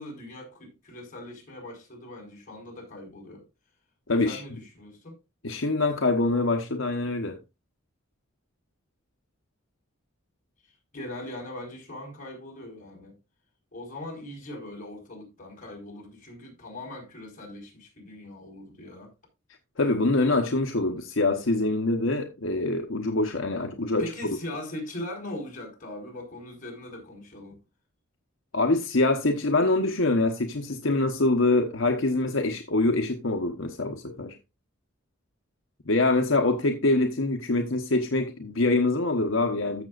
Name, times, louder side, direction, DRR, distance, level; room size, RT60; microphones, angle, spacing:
voice 1, 0.0-3.4 4.2-5.2 10.6-13.2 13.7-19.1 24.0-27.6, left 1 dB, 40° left, 4.7 m, -40 dB
voice 2, 4.1-4.4 5.4-7.4 19.8-24.0 28.5-34.3 35.9-39.9, left 2 dB, 80° left, 1.1 m, -24 dB
14.5 x 6.7 x 2.5 m
head